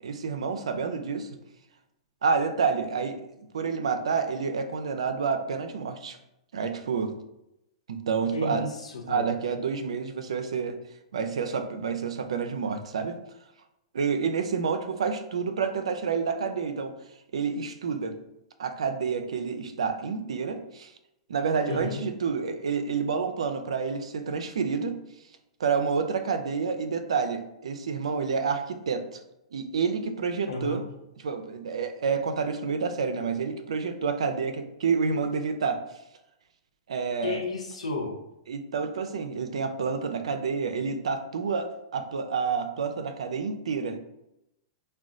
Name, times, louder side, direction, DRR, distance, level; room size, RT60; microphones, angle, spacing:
voice 1, 0.0-1.3 2.2-6.2 6.5-7.1 7.9-8.7 9.1-10.8 11.1-13.2 13.9-16.9 17.3-18.2 18.6-20.9 21.3-25.0 25.6-29.2 29.5-30.8 31.2-35.8 36.9-37.4 38.5-44.0, right 5 dB, 80° right, 8 dB, 0.3 m, -29 dB
voice 2, 8.3-9.3 21.7-22.0 30.5-30.8 37.2-38.2, left 3 dB, 85° left, 1 dB, 0.6 m, -33 dB
3.8 x 2.2 x 2.4 m, 0.87 s
hypercardioid pair, 120°, 3 cm